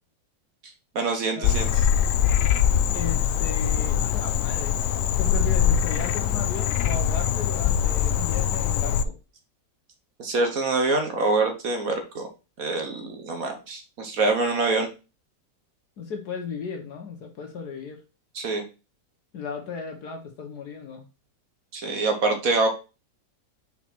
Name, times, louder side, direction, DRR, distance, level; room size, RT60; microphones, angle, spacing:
voice 1, 0.9-1.7 10.2-12.3 12.6-14.9 18.3-18.6 21.7-22.7, right 3 dB, 55° right, 5 dB, 1.5 m, -25 dB
Frog, 1.4-9.0, left 9 dB, 85° left, 0.7 m, -23 dB
voice 2, 2.9-9.1 16.0-18.0 19.3-21.1, left 5 dB, 60° left, 2 dB, 1.5 m, -36 dB
5.8 x 4.5 x 4.4 m, 0.30 s
omnidirectional pair, 2.0 m